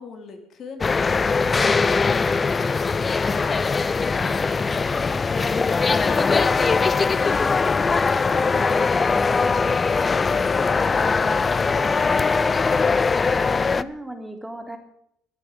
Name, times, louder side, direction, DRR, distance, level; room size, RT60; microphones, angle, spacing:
voice 1, 0.0-5.7 6.0-8.6, left 5 dB, 50° left, 5 dB, 3.5 m, -42 dB
sound 1, 0.8-13.8, left 4 dB, 30° left, 0.7 m, -21 dB
voice 2, 13.6-14.8, right 1 dB, 5° right, 5 dB, 3.4 m, -36 dB
22.5 x 9.0 x 5.3 m, 0.71 s
hypercardioid pair, 65°, 0 cm